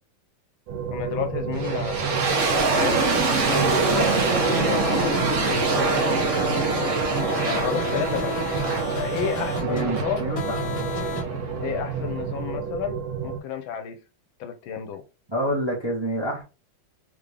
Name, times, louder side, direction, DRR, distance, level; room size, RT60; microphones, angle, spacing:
sound 1, 0.7-13.4, right 6 dB, 85° right, 1.6 m, -31 dB
voice 1, 0.9-3.1 3.4-6.9 7.5-8.4 8.9-10.3 11.6-14.0 14.4-15.0, left 8 dB, 75° left, 1.4 m, -31 dB
sound 2, 1.5-12.5, right 3 dB, 50° right, 0.9 m, -25 dB
sound 3, 2.4-11.2, left 2 dB, 25° left, 0.7 m, -33 dB
voice 2, 9.7-10.6 15.3-16.4, right 1 dB, 15° right, 0.9 m, -27 dB
3.7 x 3.5 x 3.3 m
omnidirectional pair, 2.3 m